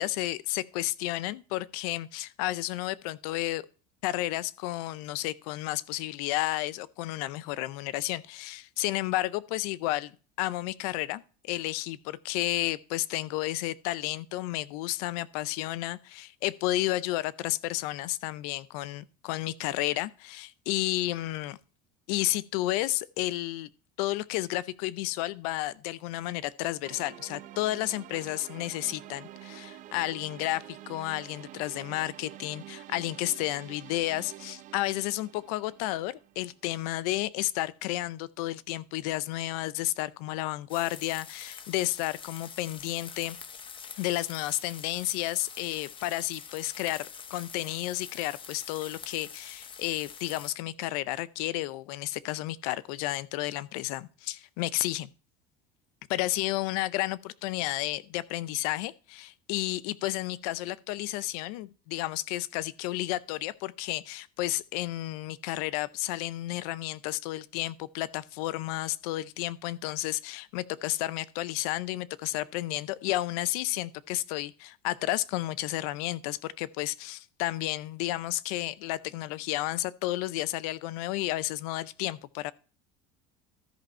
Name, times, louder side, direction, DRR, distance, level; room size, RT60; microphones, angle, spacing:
voice 1, 0.0-3.7 4.0-10.1 10.4-21.6 22.1-23.7 24.0-43.4 44.0-55.1 56.1-82.5, left 17 dB, 85° left, 0.5 m, -32 dB
sound 1, 26.8-36.8, right 14 dB, 45° right, 0.5 m, -48 dB
sound 2, 40.7-50.5, left 7 dB, 25° left, 0.7 m, -45 dB
13.5 x 5.4 x 4.3 m
cardioid pair, 130°, 19 cm